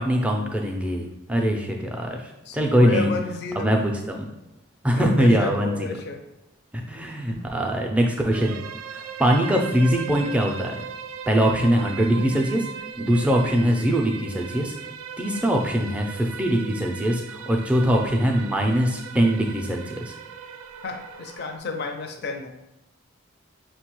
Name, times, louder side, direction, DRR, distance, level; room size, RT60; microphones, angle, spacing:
voice 1, 0.0-2.2 2.5-3.1 3.6-4.3 4.8-5.9 6.9-8.5 8.9-10.8 11.3-12.7 13.0-14.7 15.2-20.1, equal, 5° right, 1 dB, 0.4 m, -22 dB
voice 2, 2.5-3.8 4.9-6.2 7.3-7.4 20.8-22.5, left 3 dB, 50° left, 5 dB, 0.5 m, -31 dB
sound 1, 8.3-21.6, right 7 dB, 90° right, 0.3 m, -38 dB
5.5 x 2.2 x 3.0 m, 0.89 s
head